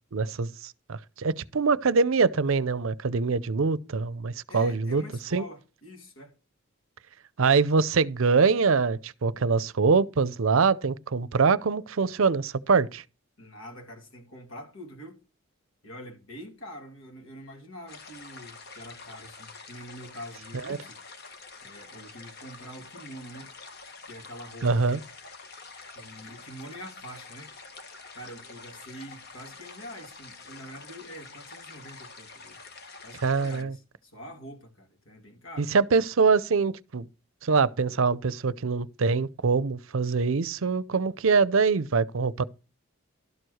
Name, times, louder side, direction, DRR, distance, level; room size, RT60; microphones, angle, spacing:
voice 1, 0.1-5.0 5.3-5.4 7.4-13.0 20.7-20.8 24.6-25.0 33.2-33.8 35.6-37.1 37.4-42.4, right 4 dB, 70° right, 0.6 m, -24 dB
voice 2, 4.5-6.3 13.4-15.2 15.8-21.0 21.6-23.5 24.1-24.8 25.9-27.5 28.1-32.6 33.0-35.7, equal, 70° left, 2.5 m, -45 dB
sound 1, 17.9-33.6, left 4 dB, 50° left, 1.2 m, -47 dB
12.0 x 4.7 x 6.4 m
head